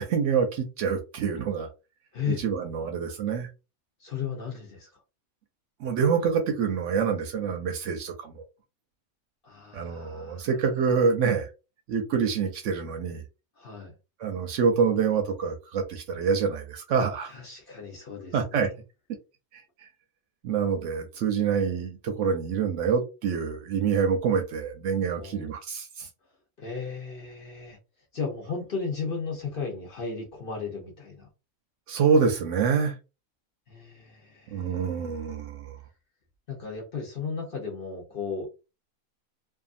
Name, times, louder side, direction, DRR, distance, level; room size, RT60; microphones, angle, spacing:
voice 1, 0.0-1.7 2.4-3.5 5.8-8.4 9.7-11.5 11.9-13.2 14.2-17.3 18.3-18.7 19.5-19.6 20.4-26.1 31.9-33.0 34.5-35.8, right 6 dB, 70° right, 0.8 m, -26 dB
voice 2, 2.1-2.4 4.0-4.9 9.4-10.5 13.6-13.9 17.3-18.7 25.2-25.5 26.6-27.8 28.1-31.3 33.7-34.8 36.5-38.5, left 5 dB, 50° left, 0.8 m, -35 dB
2.6 x 2.4 x 2.5 m
omnidirectional pair, 1.5 m